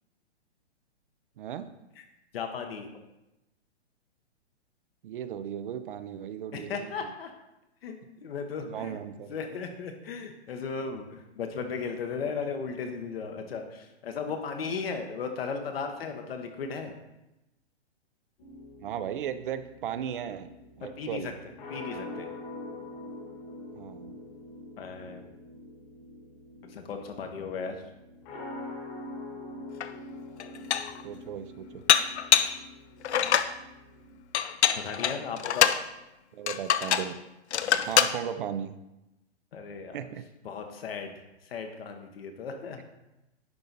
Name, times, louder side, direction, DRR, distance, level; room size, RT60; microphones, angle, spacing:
voice 1, 1.4-1.7 5.0-7.1 8.6-9.4 18.8-20.5 20.8-21.4 23.7-24.1 31.0-31.8 36.3-37.2 37.9-38.8 39.9-40.2, right 9 dB, 50° right, 12 dB, 0.5 m, -36 dB
voice 2, 2.3-3.0 6.5-7.3 7.8-7.9 8.2-9.0 9.3-16.9 20.8-21.3 21.7-22.3 24.8-25.3 26.7-27.8 34.8-35.7 37.6-37.9 39.5-40.0 40.4-41.1 41.4-42.8, left 5 dB, 60° left, 5 dB, 1.1 m, -36 dB
sound 1, 18.4-34.2, left 2 dB, 35° left, 1.4 m, -44 dB
Dishes pots and pans, 29.8-29.9 30.4-31.0 31.9-32.6 33.0-33.5 34.3-35.8 36.5-37.1 37.5-38.2, left 9 dB, 80° left, 0.6 m, -24 dB
10.5 x 4.0 x 4.0 m, 0.93 s
hypercardioid pair, 140°, 33 cm